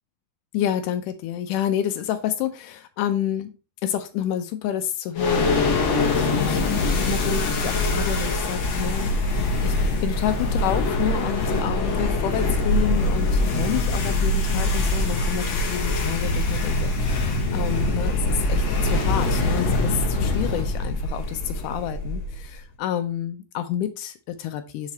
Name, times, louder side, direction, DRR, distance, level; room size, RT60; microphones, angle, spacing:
voice 1, 0.5-3.5 3.8-6.7 7.0-9.8 10.0-24.9, left 10 dB, 85° left, 8 dB, 2.2 m, -29 dB
sound 1, 5.2-22.5, left 2 dB, 65° left, 1.2 m, -23 dB
5.8 x 4.9 x 4.1 m, 0.31 s
omnidirectional pair, 3.6 m